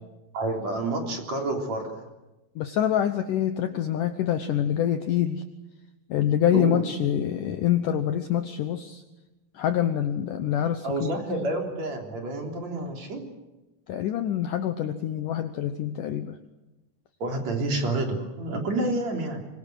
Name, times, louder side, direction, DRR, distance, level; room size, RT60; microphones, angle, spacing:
voice 1, 0.3-2.0 6.5-6.8 10.8-13.2 17.2-19.4, right 2 dB, 45° right, 2 dB, 4.4 m, -29 dB
voice 2, 2.6-5.4 6.1-9.0 9.6-11.1 13.9-16.4, left 10 dB, 70° left, 9 dB, 2.1 m, -26 dB
25.0 x 22.5 x 7.9 m, 1.0 s
omnidirectional pair, 4.8 m